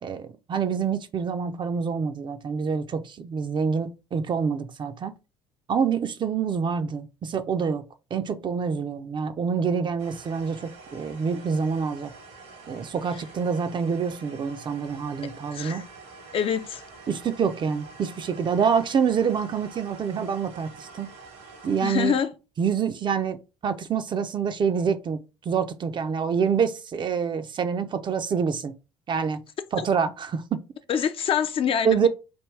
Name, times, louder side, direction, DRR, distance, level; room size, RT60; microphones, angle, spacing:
voice 1, 0.0-5.1 5.7-7.8 8.1-12.1 12.7-15.9 17.1-21.1 21.6-22.2 22.6-28.7 29.1-29.4 29.7-30.6 31.8-32.1, right 6 dB, 35° right, 0.5 m, -26 dB
sound 1, 10.0-22.2, right 4 dB, 70° right, 1.2 m, -46 dB
voice 2, 15.5-15.8 16.3-16.8 21.8-22.3 29.8-29.9 30.9-32.1, left 8 dB, 40° left, 0.4 m, -25 dB
3.4 x 2.3 x 3.2 m
hypercardioid pair, 55°, 14 cm